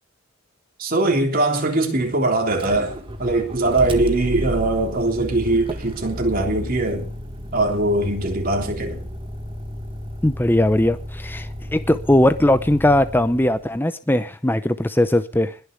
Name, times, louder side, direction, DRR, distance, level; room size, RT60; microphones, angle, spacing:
voice 1, 0.8-7.1 7.5-9.1, right 2 dB, 40° right, 3.5 m, -21 dB
Motor vehicle (road), 2.5-13.7, equal, 25° right, 1.6 m, -33 dB
voice 2, 10.2-15.5, left 1 dB, 10° left, 0.7 m, -19 dB
20.5 x 6.9 x 8.3 m
head